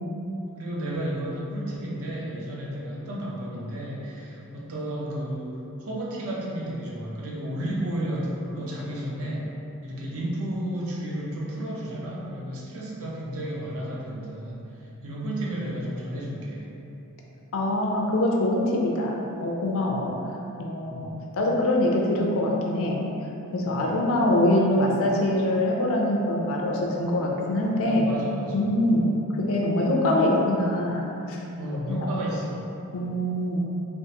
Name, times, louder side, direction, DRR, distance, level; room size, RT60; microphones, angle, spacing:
voice 1, 0.6-9.5 9.8-16.7 19.8-20.1 20.9-21.1 23.7-23.9 27.8-29.0 31.6-32.6, right 1 dB, 65° right, -4 dB, 0.6 m, -32 dB
voice 2, 17.5-20.1 20.6-23.1 23.5-28.0 28.5-29.1 29.4-31.5 31.9-32.0 32.9-33.6, left 1 dB, 65° left, -1 dB, 0.5 m, -24 dB
3.5 x 2.4 x 2.8 m, 2.9 s
head